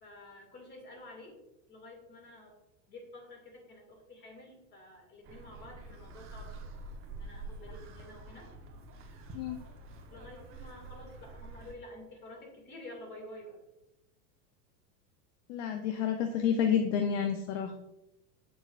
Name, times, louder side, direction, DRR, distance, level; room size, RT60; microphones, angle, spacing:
voice 1, 0.0-1.4 1.7-2.6 2.9-6.7 7.1-8.5 10.1-13.6, left 1 dB, 25° left, 0 dB, 2.2 m, -50 dB
sound 1, 5.2-11.7, right 2 dB, 30° right, 1.0 m, -47 dB
voice 2, 15.5-17.7, left 8 dB, 50° left, 5 dB, 0.7 m, -29 dB
7.9 x 6.3 x 2.5 m, 0.91 s
supercardioid pair, 145°, 46 cm